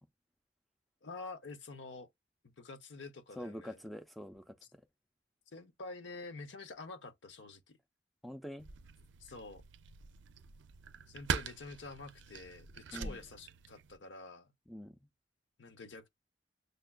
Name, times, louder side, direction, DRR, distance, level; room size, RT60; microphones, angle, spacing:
voice 1, 1.0-2.1 2.4-3.8 5.5-7.8 9.2-9.6 11.1-14.5 15.6-16.1, left 3 dB, 85° left, 0.7 m, -48 dB
voice 2, 3.4-4.8 8.2-8.7 12.9-13.2 14.7-15.1, equal, ahead, 0.4 m, -45 dB
sound 1, 8.6-14.0, right 6 dB, 85° right, 0.4 m, -43 dB
6.5 x 2.3 x 2.2 m
head